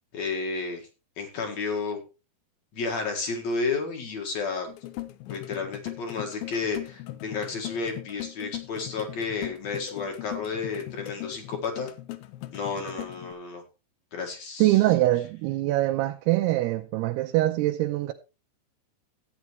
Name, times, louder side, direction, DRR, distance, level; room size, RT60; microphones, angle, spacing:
voice 1, 0.1-0.8 1.2-2.0 2.7-4.7 5.3-11.9 12.5-13.6 14.1-14.8, left 4 dB, 50° left, 2.5 m, -31 dB
sound 1, 4.7-13.3, left 15 dB, 80° left, 2.5 m, -39 dB
voice 2, 14.6-18.1, right 16 dB, 85° right, 2.7 m, -23 dB
14.5 x 8.9 x 3.1 m
omnidirectional pair, 4.6 m